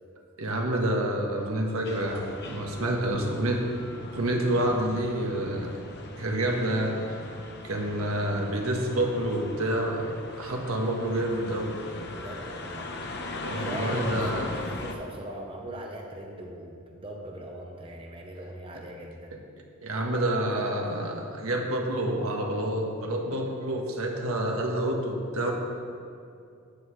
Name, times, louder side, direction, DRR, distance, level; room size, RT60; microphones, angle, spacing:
voice 1, 0.4-3.6 4.1-5.7 6.2-7.0 7.6-11.7 13.4-14.4 19.8-25.5, right 1 dB, 80° right, 1 dB, 1.5 m, -28 dB
sound 1, 1.8-14.9, left 2 dB, 50° left, 0.9 m, -39 dB
voice 2, 2.7-3.3 12.1-12.9 13.5-19.3, right 1 dB, 25° right, 1 dB, 0.9 m, -40 dB
13.5 x 9.8 x 3.2 m, 2.5 s
head